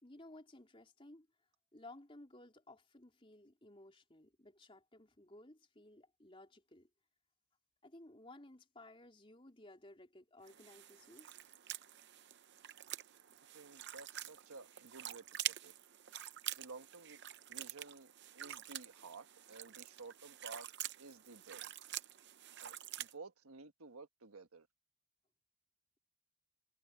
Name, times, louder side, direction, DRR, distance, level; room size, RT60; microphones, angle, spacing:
voice 1, 0.0-1.3 1.7-6.9 7.8-11.3, left 1 dB, 25° left, 3.6 m, -57 dB
sound 1, 10.5-23.1, right 12 dB, 50° right, 0.7 m, -47 dB
voice 2, 13.5-15.7 16.6-17.2 17.5-20.7 21.0-21.7 22.6-24.7, right 3 dB, 80° right, 1.3 m, -54 dB
head